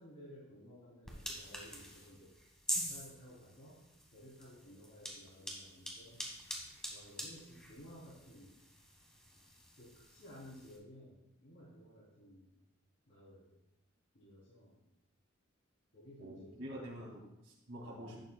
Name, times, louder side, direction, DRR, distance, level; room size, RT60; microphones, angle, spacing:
voice 1, 0.0-2.3 2.7-3.8 4.1-6.3 6.9-8.6 9.8-12.5 13.1-13.6 14.1-14.8 15.9-16.5, equal, 80° left, -9 dB, 3.2 m, -55 dB
sound 1, 1.0-10.8, equal, 5° left, 1.4 m, -45 dB
voice 2, 16.2-18.2, equal, 80° right, -4 dB, 2.3 m, -47 dB
11.0 x 8.4 x 2.3 m, 0.88 s
head